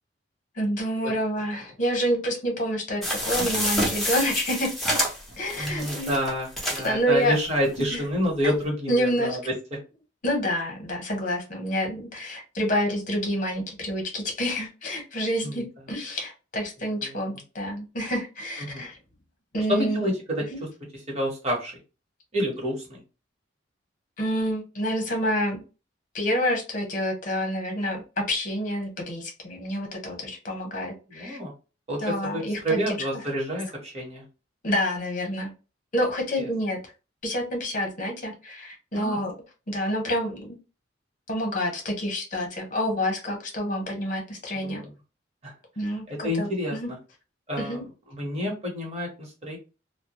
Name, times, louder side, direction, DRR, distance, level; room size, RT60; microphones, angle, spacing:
voice 1, 0.6-4.7 5.4-6.1 6.8-7.4 7.9-8.0 8.4-8.6 8.9-9.4 10.2-19.0 19.5-20.1 20.5-20.6 24.2-25.6 26.1-31.4 32.0-32.6 32.9-33.0 34.6-35.5 35.9-36.8 37.2-39.3 39.7-40.6 41.3-44.8 45.8-46.9 47.6-47.8, equal, 45° left, 2 dB, 0.8 m, -28 dB
sound 1, 3.0-6.9 7.4-7.5 7.7-7.8, equal, ahead, 0.6 m, -28 dB
voice 2, 5.6-9.8 15.4-15.6 17.0-17.2 18.6-18.8 19.7-20.4 21.1-21.8 22.3-23.0 31.1-31.5 31.9-34.2 36.4-36.5 38.9-39.2 44.6-44.9 45.4-45.5 46.1-47.0 47.5-47.8 48.1-49.6, equal, 35° right, -1 dB, 1.0 m, -29 dB
2.2 x 2.0 x 2.8 m, 0.31 s
head